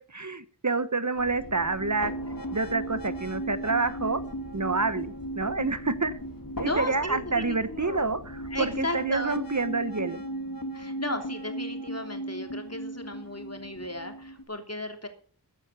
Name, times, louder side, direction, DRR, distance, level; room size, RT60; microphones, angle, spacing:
voice 1, 0.0-2.1 2.5-4.2 4.5-6.2 6.6-10.2, right 3 dB, 45° right, 14 dB, 1.1 m, -28 dB
sound 1, 1.2-14.4, right 1 dB, 55° left, 2.7 m, -37 dB
voice 2, 6.6-8.1 8.5-9.4 10.7-15.1, left 1 dB, 40° left, 5 dB, 3.2 m, -35 dB
14.5 x 9.5 x 6.9 m, 0.42 s
wide cardioid pair, 45°, 39 cm